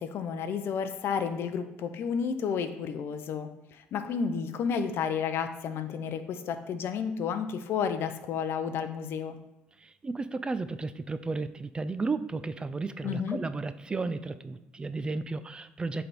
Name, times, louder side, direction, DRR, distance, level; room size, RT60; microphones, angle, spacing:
voice 1, 0.0-9.4 13.0-13.4, left 6 dB, 60° left, 10 dB, 0.6 m, -31 dB
voice 2, 9.8-16.1, right 3 dB, 20° right, 13 dB, 0.3 m, -33 dB
7.6 x 3.4 x 4.0 m, 0.96 s
cardioid pair, 100°, 5 cm